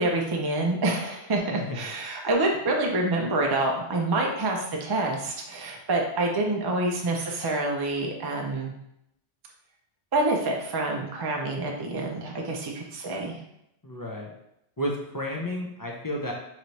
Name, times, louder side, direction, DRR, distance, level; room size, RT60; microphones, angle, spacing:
voice 1, 0.0-8.7 10.1-13.4, right 2 dB, 30° right, 0 dB, 0.4 m, -27 dB
voice 2, 1.5-1.9 13.8-14.3 14.8-16.3, equal, 30° left, -1 dB, 0.4 m, -32 dB
3.2 x 3.0 x 4.0 m, 0.79 s
omnidirectional pair, 1.2 m